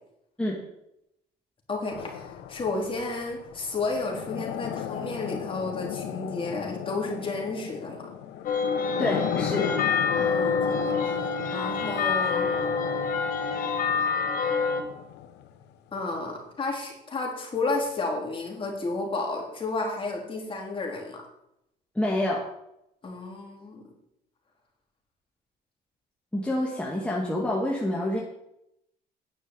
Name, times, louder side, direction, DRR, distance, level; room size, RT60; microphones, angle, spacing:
voice 1, 1.7-8.1 10.2-11.1 11.5-12.5 15.9-21.2 23.0-23.9, left 3 dB, 30° left, 0 dB, 3.6 m, -32 dB
sound 1, 1.9-15.7, left 10 dB, 85° left, 1.0 m, -35 dB
sound 2, 8.4-14.8, left 5 dB, 55° left, 1.7 m, -27 dB
voice 2, 9.0-9.7 22.0-22.5 26.3-28.2, left 1 dB, 5° left, -3 dB, 2.0 m, -27 dB
10.0 x 6.3 x 8.1 m, 0.82 s
cardioid pair, 110°, 17 cm